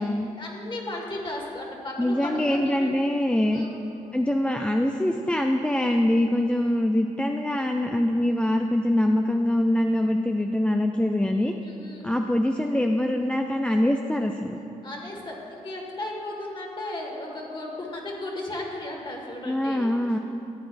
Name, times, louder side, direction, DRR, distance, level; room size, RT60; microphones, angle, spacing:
voice 1, 0.4-2.9 3.5-3.7 11.6-12.1 14.8-19.9, left 1 dB, 35° left, -1 dB, 1.8 m, -35 dB
voice 2, 2.0-3.7 4.1-11.5 12.0-14.6 19.5-20.2, left 1 dB, 10° left, 3 dB, 0.4 m, -24 dB
13.0 x 8.3 x 2.6 m, 2.9 s
cardioid pair, 75°, 14 cm